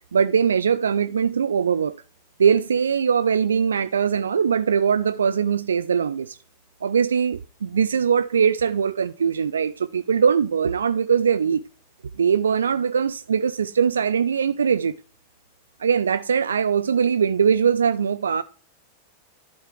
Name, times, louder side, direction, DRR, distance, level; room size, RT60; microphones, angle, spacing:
voice 1, 0.1-2.0 2.4-6.4 6.8-11.6 12.2-14.9 15.8-18.4, right 7 dB, 70° right, 0.3 m, -21 dB
11.0 x 4.6 x 4.6 m
figure-of-eight pair, 90°, 0 cm